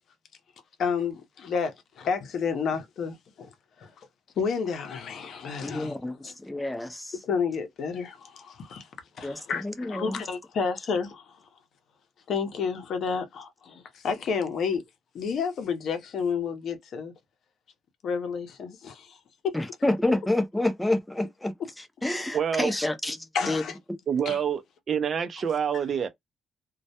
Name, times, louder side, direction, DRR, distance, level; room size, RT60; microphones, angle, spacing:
voice 1, 0.8-3.5 3.8-3.9 4.4-6.0 6.2-6.3 7.2-8.9 9.2-11.4 12.3-14.8 15.1-17.1 18.0-19.2 19.4-19.6 22.7-22.8 23.3-23.8 24.3-24.4, left 6 dB, 65° left, 0.6 m, -30 dB
voice 2, 5.6-7.1 9.2-10.2 19.5-21.5 22.0-23.6, left 1 dB, 10° left, 0.5 m, -28 dB
voice 3, 22.3-22.7 24.1-24.6 24.9-26.1, right 8 dB, 50° right, 0.5 m, -26 dB
2.2 x 2.0 x 2.7 m
cardioid pair, 90°, 0 cm